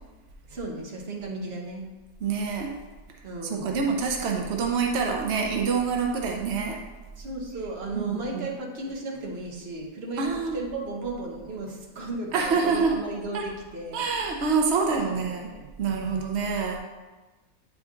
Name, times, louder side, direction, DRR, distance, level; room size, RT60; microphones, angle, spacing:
voice 1, 0.5-1.9 3.2-3.9 7.2-14.3 15.1-16.3, right 2 dB, 45° right, -1 dB, 1.0 m, -35 dB
voice 2, 2.2-2.7 3.4-6.8 7.9-8.0 8.3-8.5 10.2-10.6 12.3-12.9 13.3-13.4 13.9-15.5 15.8-16.8, right 5 dB, 80° right, 2 dB, 0.5 m, -26 dB
8.7 x 3.7 x 3.7 m, 1.2 s
omnidirectional pair, 1.9 m